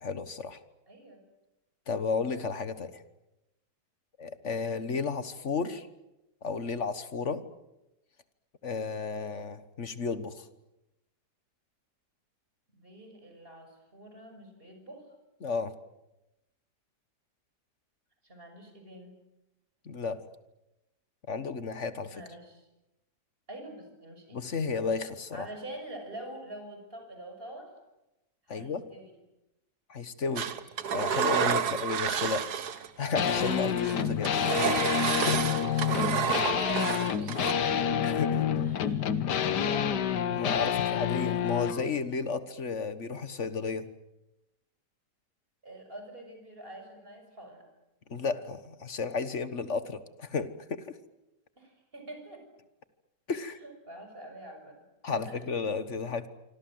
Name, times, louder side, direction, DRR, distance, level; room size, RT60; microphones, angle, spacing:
voice 1, 0.0-0.6 1.9-3.0 4.2-5.9 6.4-7.4 8.6-10.5 15.4-15.7 19.8-20.2 21.3-22.2 24.3-25.5 28.5-28.8 29.9-30.5 30.9-32.5 33.0-34.5 35.1-35.5 38.0-38.4 40.3-43.9 48.1-51.0 53.3-53.6 55.0-56.3, left 5 dB, 45° left, 12 dB, 1.6 m, -33 dB
voice 2, 0.9-1.2 12.7-15.1 18.2-19.1 22.1-22.7 23.5-24.4 25.3-27.7 28.4-29.1 31.6-31.7 36.4-37.8 38.6-40.2 45.6-47.6 51.6-52.4 53.6-55.4, right 1 dB, 30° right, 4 dB, 6.7 m, -45 dB
Engine, 30.4-32.9 33.2-37.5, right 8 dB, 70° right, 1.7 m, -30 dB
sound 1, 33.1-41.8, left 8 dB, 75° left, 1.7 m, -28 dB
26.5 x 25.5 x 7.8 m, 0.94 s
omnidirectional pair, 1.8 m